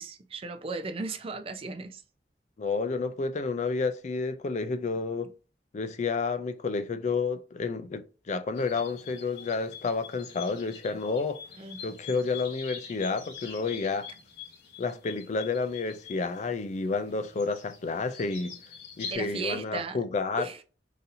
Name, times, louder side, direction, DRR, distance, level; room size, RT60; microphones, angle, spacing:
voice 1, 0.0-2.0 11.6-11.8 19.1-20.0 20.4-20.6, right 4 dB, 35° right, 0.4 m, -36 dB
voice 2, 2.6-5.3 5.7-11.4 11.8-14.1 14.8-18.6 19.0-20.5, left 4 dB, 40° left, 0.4 m, -30 dB
sound 1, 8.6-19.1, left 6 dB, 65° left, 1.0 m, -45 dB
4.0 x 2.7 x 2.6 m
head